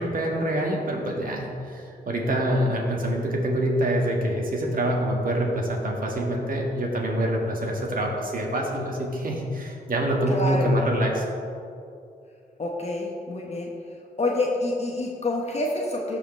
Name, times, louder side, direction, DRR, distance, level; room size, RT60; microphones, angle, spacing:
voice 1, 0.0-11.2, right 1 dB, 60° right, -1 dB, 1.8 m, -25 dB
voice 2, 10.3-10.8 12.6-13.7 14.2-16.2, left 2 dB, 40° left, -1 dB, 1.1 m, -27 dB
14.5 x 4.9 x 3.3 m, 2.5 s
cardioid pair, 60°, 17 cm